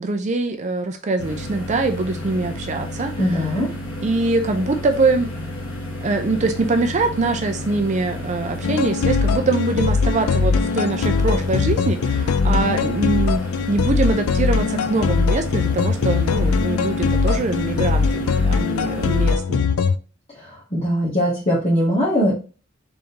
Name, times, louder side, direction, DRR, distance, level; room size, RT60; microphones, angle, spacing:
voice 1, 0.0-3.1 4.0-5.3 6.0-19.7, right 3 dB, 35° right, 5 dB, 0.5 m, -23 dB
sound 1, 1.2-19.3, left 1 dB, 65° left, 1.5 m, -32 dB
voice 2, 3.2-3.7 20.4-22.4, equal, 30° left, -7 dB, 1.2 m, -21 dB
sound 2, 8.6-20.0, left 5 dB, 80° left, 0.4 m, -21 dB
4.0 x 3.6 x 2.8 m, 0.35 s
head